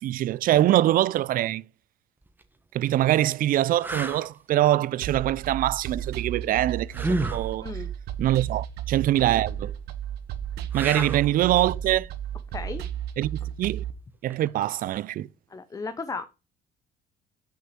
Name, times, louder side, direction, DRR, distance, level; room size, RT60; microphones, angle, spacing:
voice 1, 0.0-1.6 2.7-7.7 8.2-9.7 10.7-12.1 13.2-13.8 14.2-15.3, right 13 dB, 55° right, 0.4 m, -24 dB
sound 1, 2.2-2.4 3.1-3.2 3.8-4.3 6.9-7.5 10.7-11.3 14.3-14.5, right 1 dB, 10° right, 1.2 m, -30 dB
sound 2, 5.0-13.9, right 10 dB, 75° right, 1.1 m, -33 dB
voice 2, 7.6-7.9 10.9-11.1 12.5-12.8 15.5-16.3, left 4 dB, 20° left, 0.7 m, -34 dB
6.4 x 5.5 x 6.8 m
cardioid pair, 110°, 17 cm